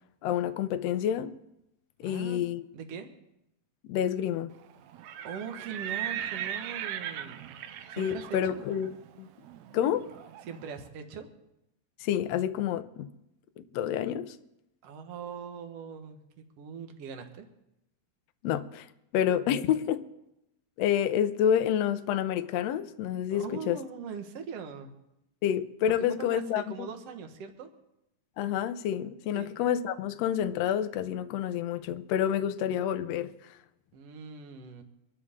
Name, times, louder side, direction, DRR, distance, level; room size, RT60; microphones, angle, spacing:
voice 1, 0.2-1.4 2.0-2.6 3.9-4.5 8.0-9.3 9.7-10.1 12.0-13.1 13.6-14.4 18.4-18.9 19.1-20.1 20.8-23.8 25.4-26.9 28.4-33.3, left 10 dB, 90° left, 1.4 m, -28 dB
voice 2, 2.0-2.5 2.7-3.1 5.2-7.5 7.9-8.6 10.5-11.3 14.8-17.5 23.3-24.9 26.2-27.7 29.3-29.5 33.9-34.8, right 6 dB, 55° right, 2.0 m, -41 dB
Livestock farm animals working animals, 4.9-10.7, right 10 dB, 80° right, 1.6 m, -38 dB
24.5 x 12.5 x 3.7 m
omnidirectional pair, 4.0 m